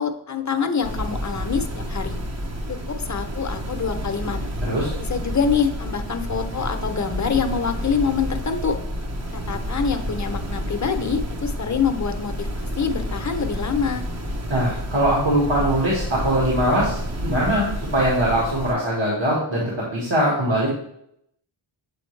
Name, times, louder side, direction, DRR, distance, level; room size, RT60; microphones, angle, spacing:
voice 1, 0.0-2.1 2.7-4.4 5.0-8.8 9.3-14.0, left 6 dB, 35° left, 7 dB, 0.7 m, -25 dB
sound 1, 0.8-18.7, equal, 30° right, 0.8 m, -30 dB
voice 2, 4.6-4.9 14.5-20.7, right 1 dB, 60° right, -6 dB, 1.7 m, -22 dB
7.7 x 3.9 x 3.2 m, 0.76 s
wide cardioid pair, 50°, 50 cm